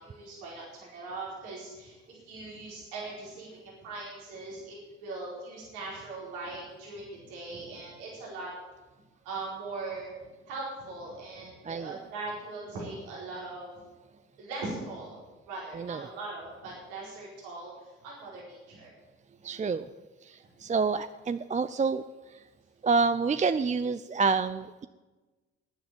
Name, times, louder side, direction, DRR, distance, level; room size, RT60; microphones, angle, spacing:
voice 1, 0.0-8.5 9.2-10.1 10.5-13.8 14.4-15.2 15.5-18.9, right 3 dB, 85° right, -4 dB, 4.5 m, -40 dB
voice 2, 11.6-12.0 15.7-16.0 19.4-19.9 20.2-22.5 22.8-24.9, right 4 dB, 25° right, 12 dB, 0.5 m, -28 dB
10.5 x 10.0 x 8.5 m, 1.2 s
hypercardioid pair, 55°, 30 cm